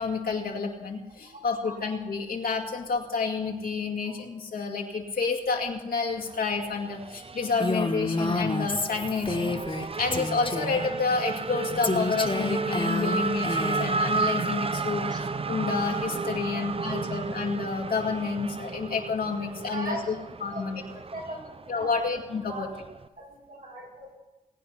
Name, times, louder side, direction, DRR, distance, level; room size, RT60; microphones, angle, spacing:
voice 1, 0.0-20.2 20.4-20.8 21.7-22.7, left 4 dB, 80° left, 0 dB, 2.1 m, -29 dB
voice 2, 1.2-1.8 4.0-4.2 15.1-15.2 15.7-15.8 16.5-17.1 19.7-20.8 21.1-22.0 22.5-22.7 23.2-24.2, right 1 dB, 70° right, -2 dB, 5.0 m, -40 dB
Race car auto racing / Accelerating revving vroom, 6.1-23.1, right 4 dB, 40° right, 0.6 m, -33 dB
Female speech woman speaking, 7.6-9.9 10.1-10.9 11.8-14.0, left 2 dB, 35° left, 1.7 m, -29 dB
19.5 x 9.5 x 5.8 m, 1.1 s
cardioid pair, 40°, 15 cm